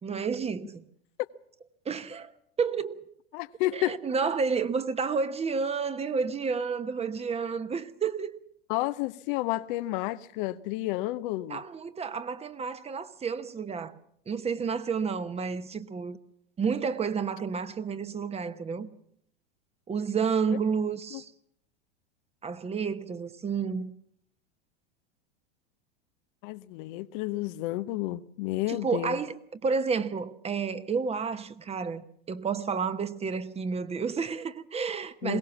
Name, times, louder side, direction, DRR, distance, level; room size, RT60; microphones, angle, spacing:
voice 1, 0.0-0.8 1.8-2.3 2.6-3.0 3.7-8.4 11.5-14.0 14.3-16.2 16.6-18.9 19.9-21.3 22.4-23.9 28.7-35.4, right 5 dB, 20° right, 1.1 m, -30 dB
voice 2, 3.3-4.0 8.7-11.6 21.1-21.2 26.4-29.2 35.2-35.4, left 17 dB, 55° left, 0.8 m, -31 dB
21.5 x 17.5 x 7.1 m
hypercardioid pair, 100°, 31 cm